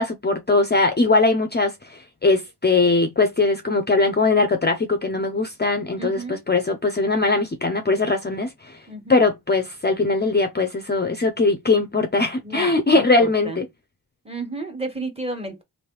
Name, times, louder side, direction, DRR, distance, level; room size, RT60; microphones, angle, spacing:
voice 1, 0.0-8.8 9.1-13.7, left 3 dB, 25° left, 0.5 m, -20 dB
voice 2, 6.0-6.4 8.9-9.2 12.4-13.1 13.5-13.6 14.2-15.6, right 2 dB, 15° right, 1.2 m, -31 dB
3.2 x 2.7 x 3.0 m
cardioid pair, 65°, 39 cm